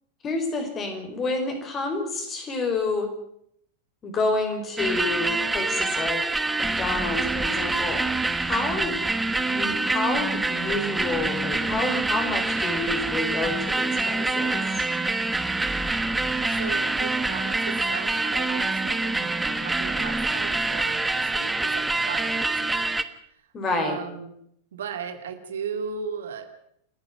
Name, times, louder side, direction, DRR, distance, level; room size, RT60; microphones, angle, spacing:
voice 1, 0.2-3.1 4.0-6.2 6.6-8.0 8.4-9.0 9.5-14.6 23.5-24.0, left 3 dB, 25° left, 5 dB, 5.4 m, -29 dB
sound 1, 4.8-23.0, right 2 dB, 10° right, 1.2 m, -26 dB
voice 2, 16.5-22.9 23.7-24.3 24.7-26.5, right 6 dB, 65° right, 7 dB, 2.3 m, -36 dB
29.5 x 10.5 x 9.3 m, 0.70 s
figure-of-eight pair, 90°, 0 cm